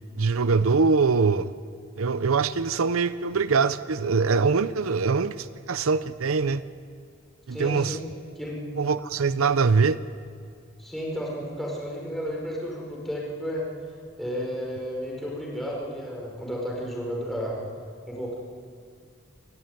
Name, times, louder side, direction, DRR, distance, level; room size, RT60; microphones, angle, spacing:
voice 1, 0.2-1.5 2.0-6.6 7.5-8.0 8.8-10.0, right 4 dB, 85° right, 0.7 m, -23 dB
voice 2, 7.5-8.0 8.4-8.6 10.8-13.7 14.2-17.6 18.1-18.3, equal, ahead, 5.3 m, -32 dB
26.5 x 14.5 x 9.5 m
head